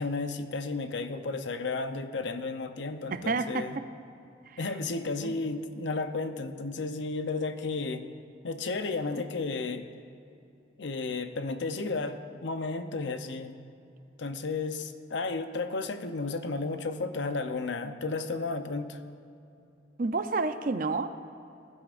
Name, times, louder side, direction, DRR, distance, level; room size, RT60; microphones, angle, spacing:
voice 1, 0.0-3.8 4.6-8.0 8.4-9.9 10.8-13.5 14.2-19.0, left 3 dB, 85° left, 9 dB, 0.7 m, -33 dB
voice 2, 3.1-3.6 4.5-4.6 5.2-5.3 20.0-21.2, right 3 dB, 50° right, 10 dB, 0.5 m, -30 dB
20.0 x 12.0 x 2.5 m, 2.6 s
head